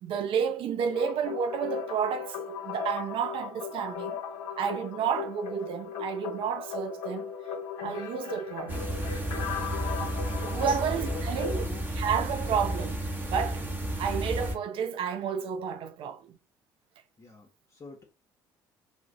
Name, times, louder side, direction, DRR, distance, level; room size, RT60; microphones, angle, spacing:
voice 1, 0.0-4.2 4.6-7.3 7.8-8.8 10.0-10.1 10.4-11.6 12.0-13.0 13.3-13.6 14.0-16.4, right 7 dB, 50° right, 0.4 m, -31 dB
sound 1, 0.9-11.6, left 7 dB, 65° left, 0.7 m, -37 dB
sound 2, 8.7-14.6, right 1 dB, 15° right, 0.9 m, -32 dB
voice 2, 10.6-11.9 12.4-12.6 17.2-18.0, left 3 dB, 30° left, 0.7 m, -45 dB
2.4 x 2.1 x 3.7 m
hypercardioid pair, 55°, 11 cm